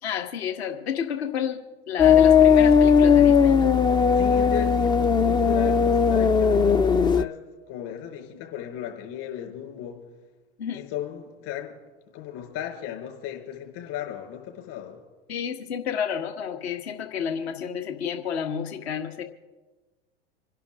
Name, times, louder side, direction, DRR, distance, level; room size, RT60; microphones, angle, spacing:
voice 1, 0.0-1.6 1.9-3.8 10.6-10.8 15.3-19.2, left 8 dB, 70° left, 4 dB, 1.7 m, -30 dB
sound 1, 2.0-7.2, left 6 dB, 15° left, 0.4 m, -18 dB
voice 2, 4.2-7.4 7.7-10.0 10.7-11.8 12.1-15.0, left 11 dB, 55° left, 0 dB, 5.3 m, -35 dB
27.5 x 11.5 x 3.8 m, 1.2 s
hypercardioid pair, 90°, 33 cm